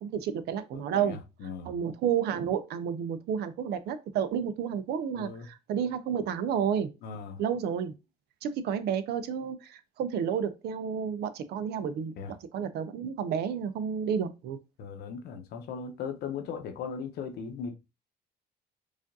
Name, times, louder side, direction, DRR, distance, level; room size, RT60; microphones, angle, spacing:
voice 1, 0.0-1.2 1.6-6.9 7.4-7.9 8.4-14.6, right 8 dB, 75° right, 0.6 m, -31 dB
voice 2, 0.7-1.7 5.1-5.5 7.0-7.4 12.2-12.3 14.8-17.7, left 6 dB, 70° left, 0.9 m, -38 dB
4.9 x 2.5 x 2.6 m
cardioid pair, 110°, 17 cm